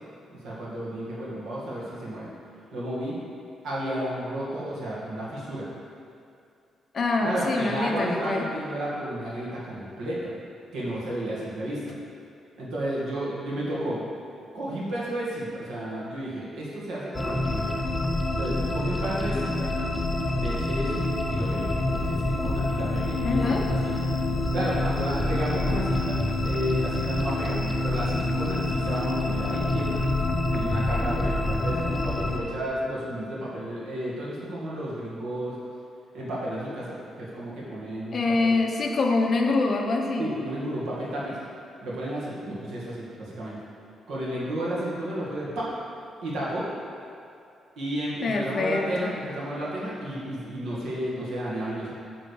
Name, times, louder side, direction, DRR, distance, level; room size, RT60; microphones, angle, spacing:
voice 1, 0.3-2.3 2.7-3.2 3.6-5.7 7.2-10.3 10.7-11.9 12.6-14.0 14.5-17.7 18.4-19.7 20.4-21.0 21.3-24.0 24.5-30.0 30.5-35.6 36.1-38.5 40.2-41.4 41.8-43.6 44.1-45.7 46.2-46.7 47.8-51.9, right 1 dB, 70° right, -6 dB, 2.0 m, -32 dB
voice 2, 6.9-8.4 23.2-23.6 38.1-40.3 48.2-49.1, left 3 dB, 35° left, 1 dB, 0.9 m, -25 dB
sound 1, 17.1-32.4, left 2 dB, 15° left, 0.5 m, -27 dB
9.1 x 3.9 x 6.8 m, 2.5 s
cardioid pair, 165°, 0 cm